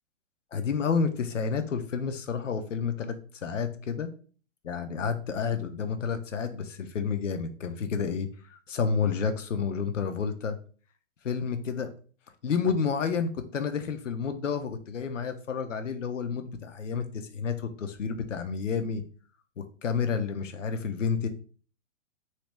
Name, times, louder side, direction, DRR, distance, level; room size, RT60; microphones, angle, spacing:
voice 1, 0.5-4.1 4.6-10.6 11.2-11.9 12.4-19.0 19.6-21.3, left 6 dB, 75° left, 8 dB, 0.7 m, -30 dB
2.9 x 2.8 x 3.2 m, 0.41 s
figure-of-eight pair, 120°, 37 cm